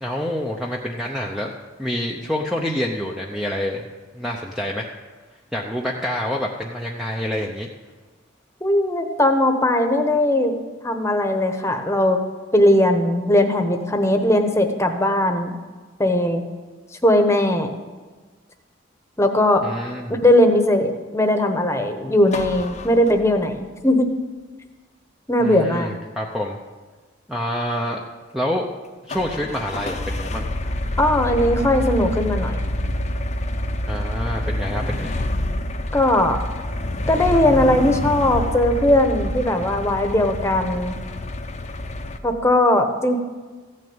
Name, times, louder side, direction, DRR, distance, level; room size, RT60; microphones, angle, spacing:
voice 1, 0.0-1.5 1.8-3.8 4.1-4.9 5.5-7.7 19.6-20.2 25.4-26.6 27.3-28.0 28.3-28.7 29.0-30.5 33.9-35.2, equal, ahead, -1 dB, 0.7 m, -27 dB
voice 2, 8.6-10.5 10.8-12.2 12.5-15.6 16.0-16.4 17.0-17.7 19.2-19.6 20.2-24.1 25.3-25.9 31.0-32.6 35.9-36.4 37.1-41.0 42.2-43.2, left 1 dB, 15° left, 5 dB, 1.1 m, -19 dB
sound 1, 22.3-23.6 29.1-42.2, left 1 dB, 35° left, 0.7 m, -27 dB
15.0 x 6.5 x 8.8 m, 1.4 s
head